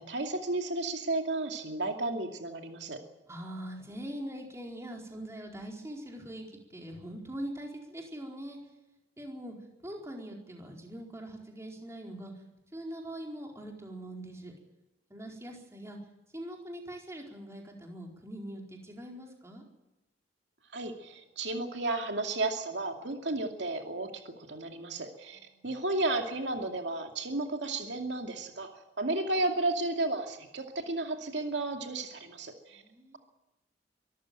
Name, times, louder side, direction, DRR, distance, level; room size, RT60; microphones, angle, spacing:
voice 1, 0.0-3.0 20.7-32.8, right 2 dB, 75° right, 4 dB, 2.5 m, -33 dB
voice 2, 3.3-8.6 9.2-9.5 9.8-12.3 12.7-14.5 15.1-16.0 16.3-19.6 25.5-25.7 32.7-33.2, right 1 dB, 15° right, 0 dB, 4.5 m, -42 dB
24.0 x 14.0 x 9.1 m, 0.98 s
head